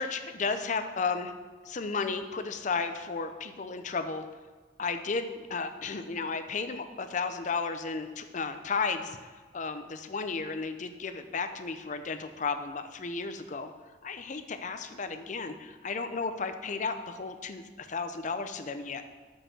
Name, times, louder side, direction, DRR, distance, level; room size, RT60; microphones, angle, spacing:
voice 1, 0.0-1.3 1.7-4.2 4.8-9.2 9.5-13.7 14.0-19.0, left 4 dB, 45° left, 8 dB, 0.5 m, -33 dB
6.5 x 5.3 x 5.9 m, 1.4 s
head